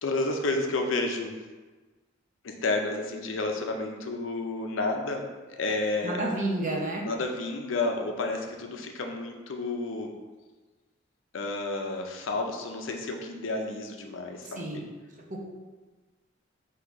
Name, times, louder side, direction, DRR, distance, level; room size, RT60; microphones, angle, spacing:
voice 1, 0.0-1.4 2.4-6.2 7.0-10.1 11.3-14.8, left 2 dB, 70° left, 3 dB, 0.5 m, -31 dB
voice 2, 6.0-7.0 14.4-14.8 15.3-15.4, right 1 dB, 40° right, -1 dB, 0.7 m, -30 dB
3.9 x 2.8 x 4.6 m, 1.3 s
head